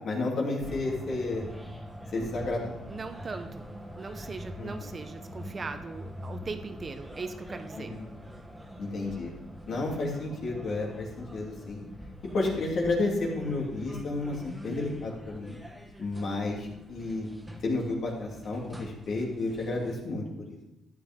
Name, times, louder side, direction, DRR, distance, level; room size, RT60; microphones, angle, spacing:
voice 1, 0.0-1.5 2.1-3.0 4.6-4.9 7.8-8.1 8.8-9.3 9.7-11.8 12.3-15.6 16.0-17.3 17.6-20.6, left 2 dB, 65° left, -2 dB, 3.0 m, -31 dB
sound 1, 0.6-20.0, equal, 10° right, 1.6 m, -44 dB
voice 2, 2.9-3.7 4.0-7.9, right 4 dB, 35° right, 8 dB, 1.0 m, -39 dB
12.5 x 8.6 x 3.7 m, 0.92 s
cardioid pair, 90°, 0 cm